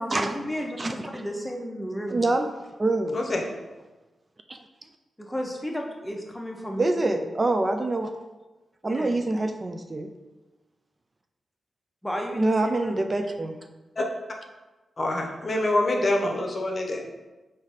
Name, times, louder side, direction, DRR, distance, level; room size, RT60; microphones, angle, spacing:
voice 1, 0.0-2.2 5.2-7.2 8.8-9.2 12.0-13.0, equal, 10° left, 0 dB, 1.0 m, -33 dB
voice 2, 0.8-1.2 2.1-3.2 4.5-4.6 6.8-8.1 8.8-10.1 12.3-13.6, right 2 dB, 35° right, 5 dB, 0.4 m, -26 dB
voice 3, 15.0-17.0, left 1 dB, 50° left, 1 dB, 0.8 m, -25 dB
3.9 x 2.7 x 4.8 m, 1.1 s
cardioid pair, 50°, 0 cm